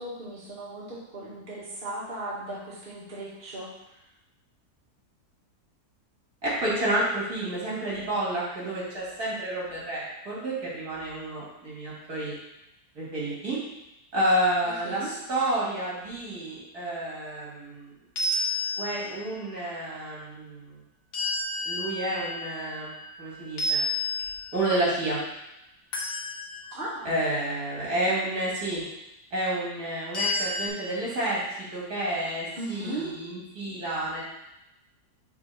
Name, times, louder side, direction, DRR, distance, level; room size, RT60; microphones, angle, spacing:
voice 1, 0.0-3.7 14.8-15.1 26.7-27.1 32.5-33.1, right 2 dB, 35° right, -7 dB, 1.6 m, -37 dB
voice 2, 6.4-12.3 12.9-13.6 14.1-17.9 18.8-20.8 21.6-22.9 23.2-23.8 24.5-25.2 27.0-28.8 29.3-34.2, right 1 dB, 65° right, -7 dB, 2.7 m, -30 dB
sound 1, 18.2-19.3 21.1-23.2 23.6-24.8 25.9-27.0 30.1-30.7, left 1 dB, 50° left, 1.1 m, -30 dB
5.2 x 3.5 x 5.7 m, 0.89 s
omnidirectional pair, 1.8 m